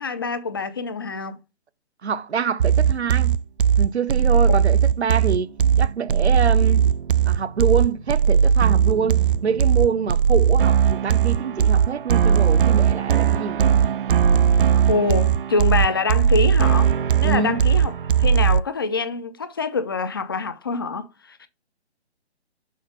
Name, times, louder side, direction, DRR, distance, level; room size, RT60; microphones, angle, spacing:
voice 1, 0.0-1.4 14.9-16.9 17.2-17.9 18.2-21.5, left 4 dB, 20° left, 0.5 m, -25 dB
voice 2, 2.0-3.4 3.8-5.5 5.8-6.9 7.3-13.6 17.2-17.6, right 6 dB, 75° right, 0.9 m, -26 dB
sound 1, 2.6-18.6, right 8 dB, 55° right, 0.4 m, -18 dB
6.5 x 4.3 x 5.7 m
figure-of-eight pair, 150°, 33 cm